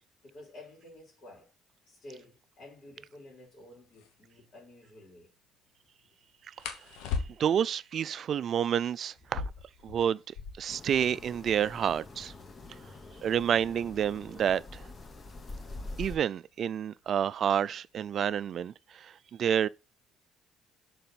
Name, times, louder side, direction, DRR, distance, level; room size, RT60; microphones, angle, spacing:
voice 1, 0.2-1.5 1.9-5.3, left 1 dB, 50° left, 3.1 m, -51 dB
sound 1, 3.9-4.1 6.6-7.7 9.2-10.8 11.1-11.2 11.4-12.0 12.6-15.2 16.2-16.5 16.9-17.4 17.7-18.4, left 5 dB, 85° left, 1.1 m, -39 dB
voice 2, 7.4-9.5 9.8-10.2 10.6-12.3 13.2-14.8 16.0-19.1 19.4-19.7, right 9 dB, 55° right, 0.3 m, -29 dB
sound 2, 10.7-16.2, left 2 dB, 35° left, 1.2 m, -45 dB
6.8 x 4.1 x 4.0 m
supercardioid pair, 75°, 0 cm